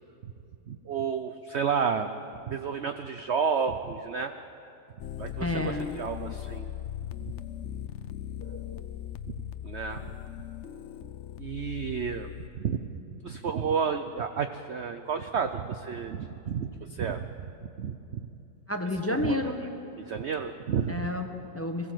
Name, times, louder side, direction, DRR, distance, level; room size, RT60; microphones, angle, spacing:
voice 1, 0.7-2.1 2.5-4.3 5.2-6.7 7.2-7.3 9.6-10.1 11.4-12.8 13.2-17.5 17.8-18.3 19.1-19.4 20.0-21.1, right 6 dB, 65° right, 7 dB, 0.6 m, -31 dB
sound 1, 5.0-12.5, left 11 dB, 75° left, 0.6 m, -39 dB
voice 2, 5.4-5.9 8.4-8.9 18.7-19.6 20.9-21.9, left 2 dB, 10° left, 4 dB, 0.9 m, -31 dB
23.0 x 15.5 x 7.8 m, 2.7 s
omnidirectional pair, 2.0 m